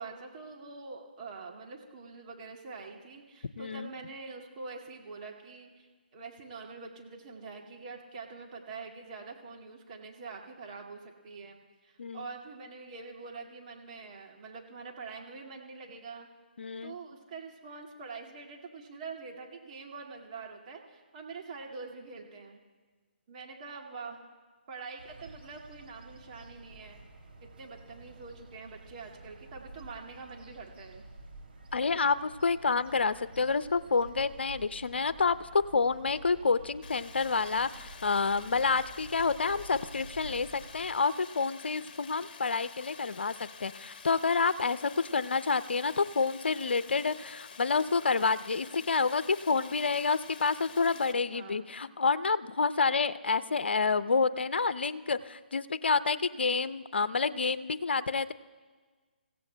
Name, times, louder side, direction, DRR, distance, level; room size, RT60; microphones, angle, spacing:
voice 1, 0.0-16.3 16.8-22.6 23.3-24.2 24.7-27.0 27.4-31.1 51.3-51.7, right 4 dB, 40° right, 0 dB, 2.1 m, -45 dB
voice 2, 3.6-3.9 12.0-12.2 16.6-16.9 31.7-58.3, left 4 dB, 75° left, 15 dB, 0.5 m, -29 dB
sound 1, 25.0-41.0, right 2 dB, 70° right, 2.9 m, -50 dB
Stream, 36.8-51.1, left 5 dB, 50° left, 1.1 m, -49 dB
29.0 x 16.0 x 2.2 m, 1.4 s
figure-of-eight pair, 145°, 6 cm